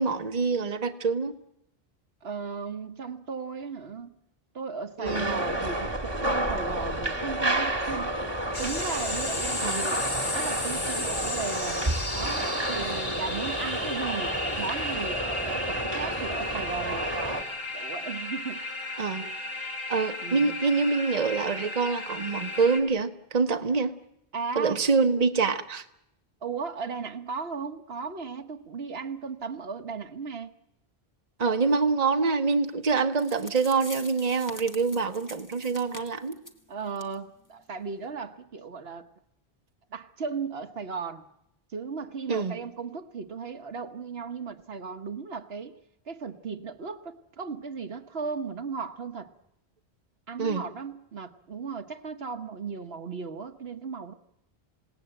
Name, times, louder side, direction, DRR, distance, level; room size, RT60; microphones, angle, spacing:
voice 1, 0.0-1.3 5.0-5.4 9.6-9.8 19.0-19.3 19.9-23.9 24.5-25.8 31.4-36.4 42.3-42.6 50.4-50.6, right 4 dB, 40° right, 7 dB, 1.1 m, -26 dB
voice 2, 2.2-4.1 4.5-8.2 8.6-10.0 10.3-11.8 12.1-17.5 17.7-18.7 20.2-20.6 24.3-24.8 26.4-30.5 34.9-35.0 36.7-39.1 39.9-41.3 41.7-45.8 46.0-49.3 50.3-54.1, right 5 dB, 70° right, 8 dB, 1.3 m, -36 dB
sound 1, 5.0-17.4, right 1 dB, 25° right, 1.7 m, -30 dB
sound 2, 8.5-22.8, left 2 dB, 65° left, 2.9 m, -34 dB
sound 3, 32.9-33.0 33.2-36.6 37.0-37.1 37.4-37.5 38.0-38.1, left 1 dB, 20° left, 1.7 m, -44 dB
27.0 x 18.0 x 8.9 m, 0.83 s
omnidirectional pair, 1.1 m